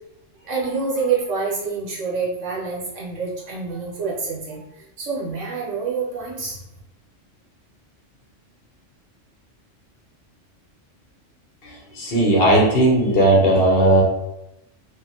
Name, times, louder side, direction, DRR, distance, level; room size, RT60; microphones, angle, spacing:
voice 1, 0.4-6.6, right 5 dB, 75° right, -5 dB, 1.3 m, -27 dB
voice 2, 11.6-14.0, right 1 dB, 55° left, -4 dB, 0.9 m, -16 dB
2.8 x 2.5 x 2.7 m, 0.89 s
omnidirectional pair, 1.3 m